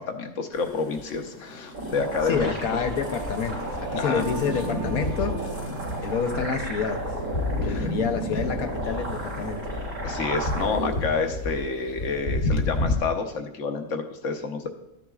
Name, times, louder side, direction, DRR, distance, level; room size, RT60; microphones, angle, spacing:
voice 1, 0.0-2.5 3.9-4.2 7.6-7.9 10.0-14.7, left 4 dB, 65° left, 5 dB, 1.2 m, -29 dB
sound 1, 0.5-12.9, left 2 dB, 45° left, 1.2 m, -33 dB
sound 2, 1.7-10.9, right 1 dB, 90° right, 2.6 m, -32 dB
voice 2, 2.3-5.5 6.0-7.2 7.7-9.7, left 6 dB, 85° left, 6 dB, 1.3 m, -28 dB
Singing / Musical instrument, 2.5-12.1, right 4 dB, 55° right, 1.5 m, -41 dB
12.5 x 9.9 x 2.4 m, 0.91 s
omnidirectional pair, 1.5 m